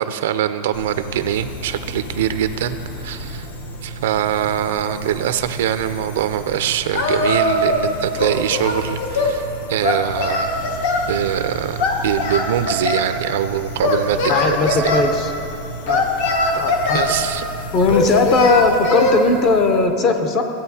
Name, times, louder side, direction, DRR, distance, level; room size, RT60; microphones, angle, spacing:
voice 1, 0.0-3.5 3.8-10.5 11.1-14.9 16.9-17.5, right 10 dB, 80° right, 11 dB, 0.4 m, -23 dB
sound 1, 0.7-19.9, equal, 90° left, 1.0 m, -33 dB
Singing, 6.9-7.9 8.2-9.4 9.8-11.1 11.8-13.1 13.8-15.0 15.9-17.2 17.9-19.2, left 2 dB, 65° left, 1.1 m, -20 dB
voice 2, 14.3-15.3 15.9-16.1 16.6-17.0 17.7-20.4, left 3 dB, 30° left, 6 dB, 0.5 m, -18 dB
15.5 x 8.5 x 2.8 m, 2.8 s
supercardioid pair, 175°, 0 cm